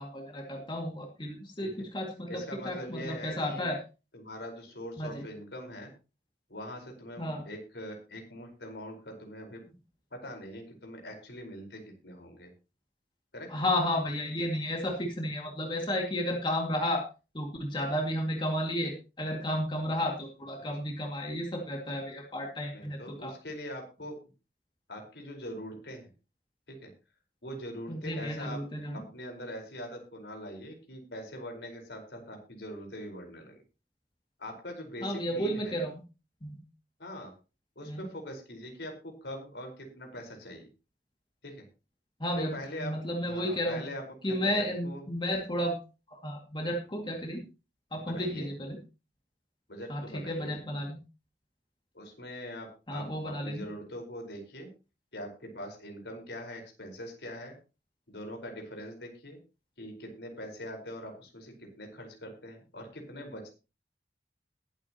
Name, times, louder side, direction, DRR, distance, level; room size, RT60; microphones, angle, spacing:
voice 1, 0.0-3.8 5.0-5.3 7.2-7.4 13.5-17.0 17.3-23.3 27.9-29.0 35.0-36.0 36.4-36.6 37.9-38.1 42.2-43.8 44.2-45.8 46.1-47.4 47.9-48.8 49.9-51.0 52.9-53.7, equal, 25° left, 1 dB, 2.3 m, -32 dB
voice 2, 2.3-3.7 4.1-5.9 6.5-9.6 10.1-12.5 13.3-13.5 22.7-24.1 24.9-26.1 26.7-26.9 27.4-28.6 28.9-33.6 34.4-35.8 37.0-37.3 37.7-40.7 41.4-41.6 42.4-42.9 43.3-45.0 48.0-48.5 49.7-50.6 51.9-54.7 55.1-57.5 58.1-59.4 59.8-63.5, equal, 75° left, 2 dB, 4.7 m, -42 dB
21.0 x 8.5 x 3.0 m, 0.31 s
head